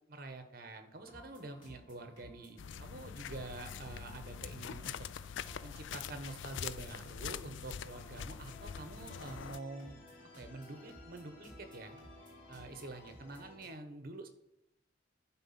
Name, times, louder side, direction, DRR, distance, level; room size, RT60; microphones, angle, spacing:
voice 1, 0.1-5.1 5.6-12.0 12.5-14.3, right 2 dB, 50° right, 8 dB, 1.2 m, -47 dB
sound 1, 0.9-13.7, equal, 25° left, 3.3 m, -58 dB
sound 2, 2.6-9.6, left 8 dB, 70° left, 0.4 m, -44 dB
sound 3, 8.4-13.6, left 2 dB, 45° left, 3.0 m, -56 dB
11.5 x 4.3 x 5.8 m, 0.79 s
head